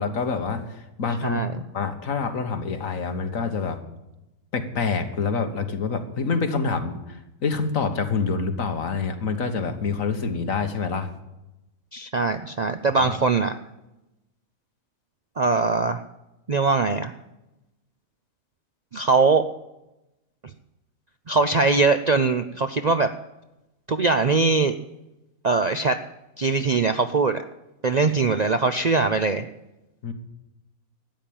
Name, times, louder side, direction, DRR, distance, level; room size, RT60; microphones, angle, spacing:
voice 1, 0.0-1.4 1.7-3.8 4.5-11.1 13.0-13.2 30.0-30.1, left 4 dB, 65° left, 7 dB, 1.8 m, -26 dB
voice 2, 11.9-13.5 15.4-16.0 16.5-17.1 18.9-19.5 21.3-23.1 23.9-24.8 25.4-26.0 26.4-27.4 27.8-29.4, right 4 dB, 50° right, 9 dB, 0.5 m, -21 dB
13.0 x 9.1 x 8.6 m, 0.95 s
omnidirectional pair, 1.5 m